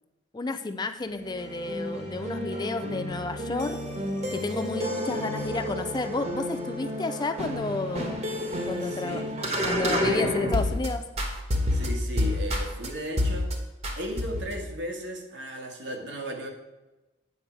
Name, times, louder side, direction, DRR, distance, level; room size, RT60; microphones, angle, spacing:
voice 1, 0.3-3.8 4.3-8.3 8.7-9.2 9.6-11.0, left 3 dB, 20° left, 8 dB, 0.4 m, -31 dB
sound 1, 1.1-10.9 11.2-12.9 13.2-13.5 13.8-14.6, left 1 dB, 35° right, 1.3 m, -30 dB
voice 2, 8.8-10.4 11.7-13.5 14.0-16.5, equal, 70° right, 2 dB, 1.6 m, -36 dB
8.6 x 6.7 x 4.6 m, 1.1 s
head